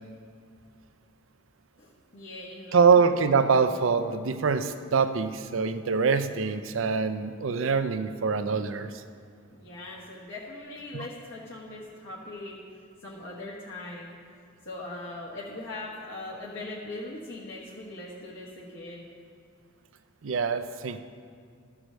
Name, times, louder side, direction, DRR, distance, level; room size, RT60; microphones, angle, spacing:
voice 1, 1.8-3.0 9.5-12.6 13.0-14.2 14.6-19.1, left 2 dB, 70° left, -6 dB, 1.3 m, -40 dB
voice 2, 2.7-9.0 20.2-21.0, right 5 dB, 90° right, 10 dB, 0.5 m, -24 dB
13.5 x 4.9 x 6.3 m, 2.2 s
head